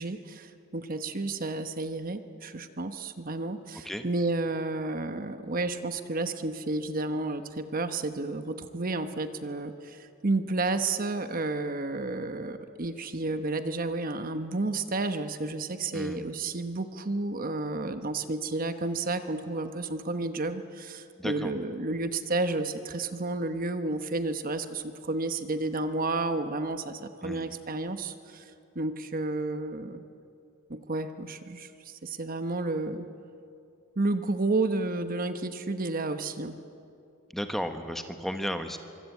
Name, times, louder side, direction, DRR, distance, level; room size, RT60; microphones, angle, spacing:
voice 1, 0.0-30.0 30.7-33.1 34.0-36.6, right 2 dB, 40° right, 9 dB, 1.1 m, -31 dB
voice 2, 15.9-16.3 21.2-21.5 27.2-27.5 37.3-38.8, equal, ahead, 6 dB, 1.2 m, -34 dB
24.5 x 23.5 x 8.5 m, 2.5 s
head